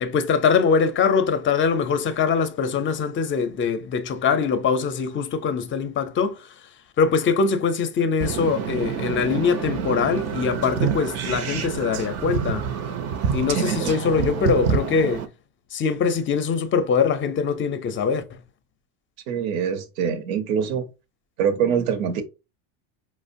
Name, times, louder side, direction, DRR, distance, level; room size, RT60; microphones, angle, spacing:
voice 1, 0.0-6.4 7.0-12.6 13.3-15.3 15.7-18.4, left 5 dB, 30° left, 0.6 m, -22 dB
sound 1, 8.2-15.3, right 7 dB, 35° right, 0.5 m, -27 dB
voice 2, 19.3-20.8 21.4-22.2, right 7 dB, 70° right, 0.8 m, -24 dB
4.8 x 2.0 x 2.5 m
hypercardioid pair, 90°, 43 cm